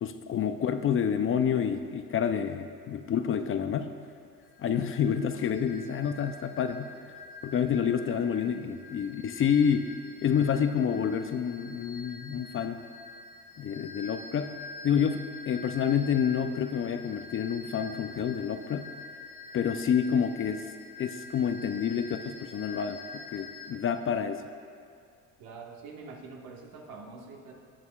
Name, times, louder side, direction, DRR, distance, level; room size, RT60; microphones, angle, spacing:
voice 1, 0.0-3.9 4.6-7.2 7.4-9.9 10.2-12.8 13.6-14.6 14.8-18.9 19.5-20.7 21.0-24.4, left 8 dB, 40° left, 9 dB, 0.5 m, -28 dB
sound 1, 4.4-23.7, left 3 dB, 60° left, 0.9 m, -46 dB
voice 2, 25.4-27.5, right 4 dB, 75° right, 0 dB, 1.3 m, -45 dB
16.5 x 6.3 x 2.3 m, 2.3 s
supercardioid pair, 80°, 34 cm